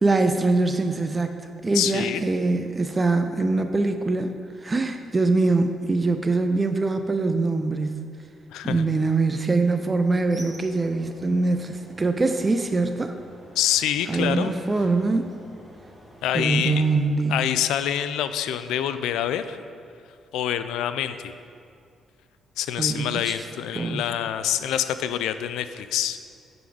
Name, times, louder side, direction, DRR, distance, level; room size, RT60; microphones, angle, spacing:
voice 1, 0.0-8.1 8.6-13.1 14.1-15.4 16.3-17.5 22.8-23.5 23.7-24.1, right 3 dB, 25° right, 7 dB, 0.4 m, -23 dB
voice 2, 1.7-2.2 8.5-8.8 13.6-14.5 16.2-16.9 17.3-19.6 20.3-21.3 22.6-26.2, left 10 dB, 90° left, 11 dB, 0.3 m, -26 dB
sound 1, 10.2-17.1, equal, 10° right, 1.5 m, -48 dB
9.1 x 4.0 x 4.9 m, 2.4 s
cardioid pair, 90°, 0 cm